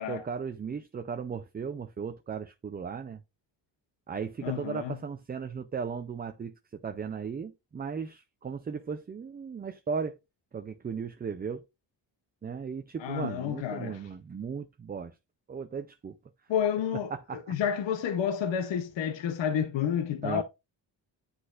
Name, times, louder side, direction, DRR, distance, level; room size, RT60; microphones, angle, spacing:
voice 1, 0.1-3.2 4.1-10.1 10.5-11.6 12.4-15.1 15.5-16.2 17.1-17.5 20.2-20.4, right 6 dB, 25° right, 0.3 m, -36 dB
voice 2, 4.4-5.0 13.0-14.0 16.5-20.4, left 8 dB, 85° left, 0.8 m, -30 dB
9.6 x 4.2 x 2.4 m
wide cardioid pair, 155°, 43 cm